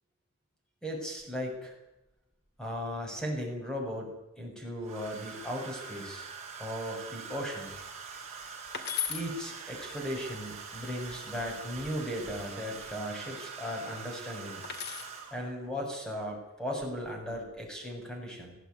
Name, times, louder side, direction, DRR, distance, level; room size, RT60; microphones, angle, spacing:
voice 1, 0.8-1.7 2.6-6.2 6.6-7.7 9.1-14.6 15.3-18.6, equal, 5° left, 1 dB, 7.1 m, -37 dB
Domestic sounds home sounds, 4.8-15.6 16.8-17.1 17.3-17.7, right 5 dB, 35° right, 6.8 m, -44 dB
sound 1, 8.7-9.3 11.5-12.1 14.6-15.2 16.5-16.9, left 8 dB, 55° left, 2.3 m, -36 dB
19.5 x 16.0 x 9.7 m, 0.92 s
head